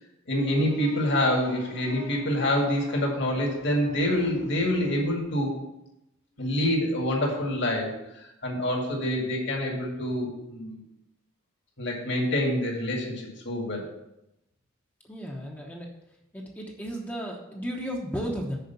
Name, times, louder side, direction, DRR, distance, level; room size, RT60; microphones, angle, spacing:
voice 1, 0.3-5.5 6.4-10.8 11.8-13.9, left 1 dB, 60° left, -1 dB, 2.1 m, -26 dB
voice 2, 15.0-15.9 16.3-18.6, equal, 10° left, -1 dB, 0.9 m, -34 dB
6.6 x 4.9 x 6.9 m, 0.87 s
head